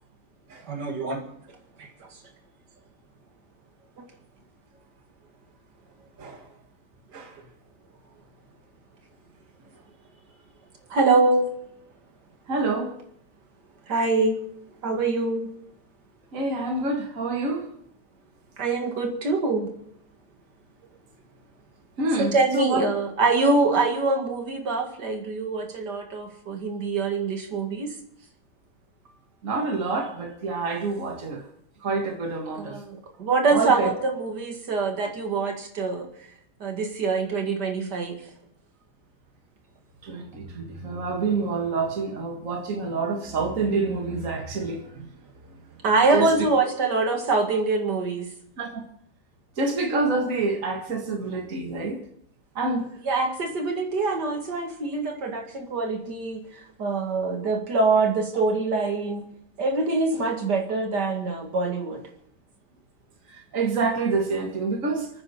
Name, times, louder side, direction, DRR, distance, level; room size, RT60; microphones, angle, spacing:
voice 1, 0.7-1.3 1.8-1.9 10.9-11.5 13.9-14.4 14.8-15.5 18.6-19.7 22.2-27.9 32.6-36.1 36.6-38.2 45.8-48.3 53.0-59.2 59.6-62.0, right 3 dB, 85° right, 3 dB, 2.6 m, -24 dB
voice 2, 12.5-12.9 16.3-17.7 22.0-22.8 29.4-31.4 31.8-32.8 33.5-33.9 40.0-45.1 46.1-46.3 48.6-48.8 49.6-52.0 52.6-52.8 63.3-65.1, right 3 dB, 50° right, 1 dB, 2.2 m, -27 dB
28.5 x 9.5 x 4.3 m, 0.70 s
omnidirectional pair, 1.8 m